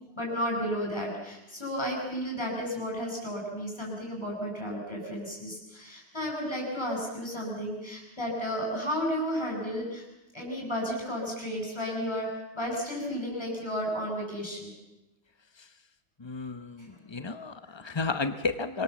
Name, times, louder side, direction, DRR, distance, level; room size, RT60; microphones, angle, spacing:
voice 1, 0.2-10.0 10.3-12.3 12.5-14.7 17.7-17.8, equal, 15° left, -1 dB, 8.1 m, -33 dB
voice 2, 16.2-18.8, left 4 dB, 35° left, 9 dB, 0.4 m, -32 dB
26.0 x 22.5 x 7.3 m, 0.98 s
omnidirectional pair, 2.0 m